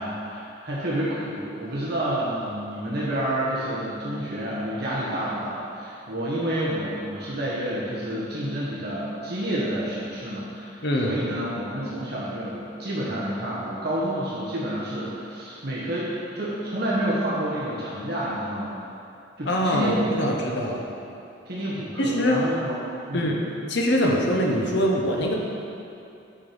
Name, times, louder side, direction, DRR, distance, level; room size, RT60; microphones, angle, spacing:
voice 1, 0.0-18.8 19.4-20.4 21.5-22.7 23.1-23.3, right 1 dB, 55° right, -8 dB, 1.3 m, -29 dB
voice 2, 10.8-11.2 19.5-20.8 22.0-22.4 23.1-23.4 23.7-25.3, equal, 60° left, -1 dB, 1.1 m, -23 dB
9.6 x 4.6 x 5.1 m, 2.7 s
head